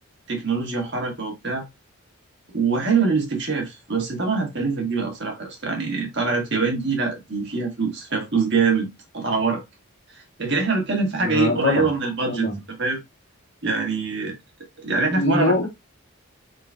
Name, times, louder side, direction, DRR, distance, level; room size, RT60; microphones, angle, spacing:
voice 1, 0.3-1.7 2.5-8.9 9.1-9.6 10.1-12.5 12.8-13.0 13.6-14.4 14.8-15.5, right 4 dB, 55° right, 1.4 m, -24 dB
voice 2, 11.2-11.9 12.3-12.6 15.1-15.7, left 2 dB, 55° left, 1.5 m, -23 dB
4.7 x 3.8 x 2.4 m
head